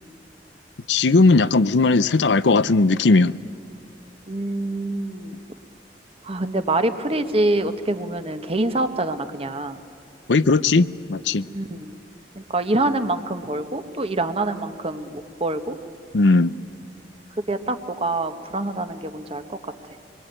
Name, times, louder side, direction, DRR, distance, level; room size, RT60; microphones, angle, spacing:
voice 1, 0.9-3.3 10.3-11.5 16.1-16.5, left 3 dB, 85° left, 17 dB, 0.6 m, -17 dB
voice 2, 4.3-5.4 6.2-9.8 11.5-12.0 12.3-15.8 17.4-19.6, right 2 dB, 35° right, 8 dB, 1.3 m, -25 dB
26.0 x 22.0 x 9.2 m, 2.4 s
head